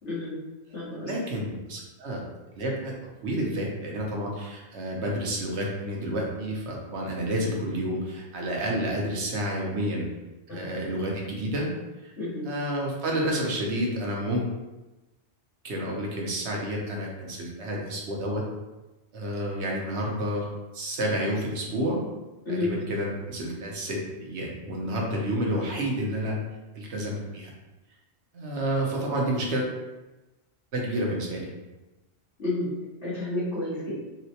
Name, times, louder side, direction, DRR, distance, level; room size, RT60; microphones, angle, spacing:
voice 1, 0.0-0.4 0.7-1.1 10.5-10.7 12.2-12.5 22.4-22.7 32.4-32.7 33.0-33.9, left 2 dB, 85° left, -8 dB, 1.6 m, -30 dB
voice 2, 1.0-2.2 2.6-10.1 10.5-11.7 12.0-12.1 12.4-14.5 15.6-18.4 19.1-20.5 20.7-22.0 22.5-26.4 26.7-27.5 28.3-29.7 30.7-31.5, right 1 dB, 75° right, -2 dB, 1.0 m, -30 dB
3.9 x 2.1 x 2.8 m, 1.1 s
omnidirectional pair, 1.2 m